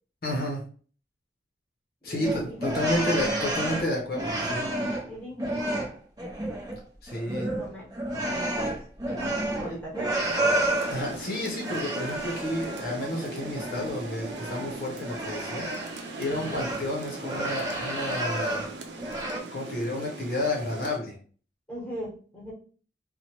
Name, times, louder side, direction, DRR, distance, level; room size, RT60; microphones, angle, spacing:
voice 1, 0.2-0.6 2.0-4.7 7.0-7.5 10.9-15.7 16.2-18.6 19.5-21.2, left 1 dB, 55° left, 0 dB, 0.6 m, -31 dB
voice 2, 2.0-3.5 5.0-5.8 7.5-7.9 8.2-10.2 16.3-16.7 21.7-22.5, equal, 10° left, -5 dB, 1.1 m, -39 dB
sound 1, 2.2-5.1 5.4-6.8 7.1-11.2 11.6-13.0 13.4-16.9 17.2-18.7 19.0-19.4, right 1 dB, 20° right, 0.6 m, -30 dB
Rain, 10.2-21.0, right 2 dB, 90° right, 0.6 m, -40 dB
3.0 x 2.1 x 2.8 m, 0.41 s
head